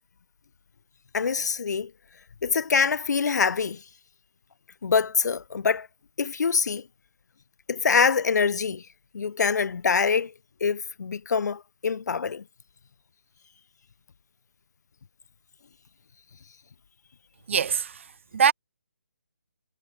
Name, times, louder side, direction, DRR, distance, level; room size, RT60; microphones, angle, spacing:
voice 1, 1.1-1.9 2.4-3.8 4.8-5.9 6.2-6.8 7.7-8.8 9.1-10.3 10.6-12.4, left 5 dB, 75° left, 0.4 m, -24 dB
voice 2, 17.5-18.5, right 7 dB, 45° right, 0.6 m, -24 dB
hypercardioid pair, 160°, 9 cm